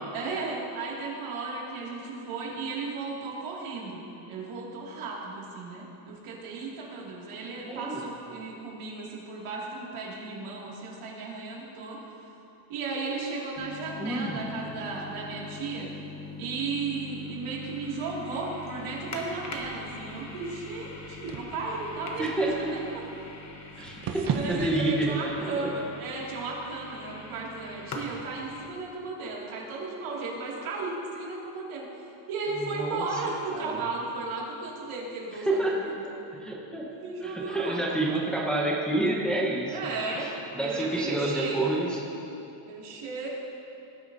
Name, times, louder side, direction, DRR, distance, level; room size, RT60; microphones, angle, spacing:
voice 1, 0.1-12.0 12.7-15.9 16.4-23.0 23.7-31.9 32.3-35.9 36.9-37.8 39.7-40.3 40.6-41.8 42.7-43.3, right 3 dB, 75° right, -4 dB, 2.6 m, -35 dB
voice 2, 7.6-8.0 14.0-14.4 22.2-22.7 23.8-25.7 32.6-33.0 33.5-33.8 35.4-35.9 36.3-36.9 37.2-39.9 40.1-42.0, right 2 dB, ahead, -4 dB, 1.1 m, -29 dB
sound 1, 13.6-28.7, left 3 dB, 30° left, 1.1 m, -43 dB
sound 2, 17.7-24.8, right 6 dB, 45° right, 0.8 m, -39 dB
18.5 x 8.2 x 2.8 m, 2.9 s
cardioid pair, 145°, 50 cm